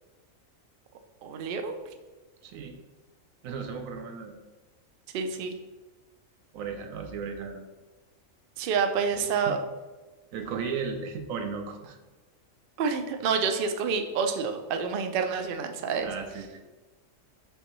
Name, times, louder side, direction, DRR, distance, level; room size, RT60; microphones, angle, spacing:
voice 1, 1.2-1.8 5.1-5.5 8.6-9.6 12.8-16.1, right 5 dB, 65° right, 7 dB, 0.6 m, -28 dB
voice 2, 2.4-2.8 3.4-4.3 6.5-7.6 8.6-8.7 9.3-9.6 10.3-11.8 16.0-16.6, right 5 dB, 85° right, 4 dB, 1.0 m, -35 dB
5.4 x 3.1 x 3.0 m, 1.2 s
omnidirectional pair, 1.4 m